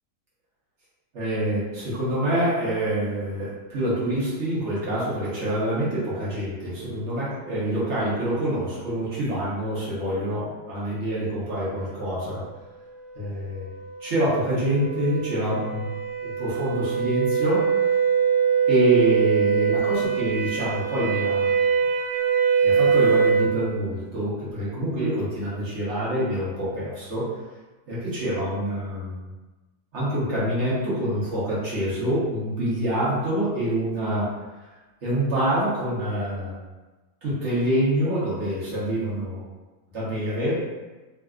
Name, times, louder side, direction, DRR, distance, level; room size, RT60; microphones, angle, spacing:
voice 1, 1.1-12.4 13.1-13.7 14.0-15.9 16.2-17.6 18.7-21.6 22.6-27.3 27.9-29.2 29.9-34.3 35.0-36.6 37.2-39.4 39.9-40.6, right 1 dB, 45° right, -9 dB, 1.2 m, -26 dB
sound 1, 13.6-23.5, right 6 dB, 65° right, 0.4 m, -23 dB
3.3 x 2.6 x 2.4 m, 1.2 s
omnidirectional pair, 1.8 m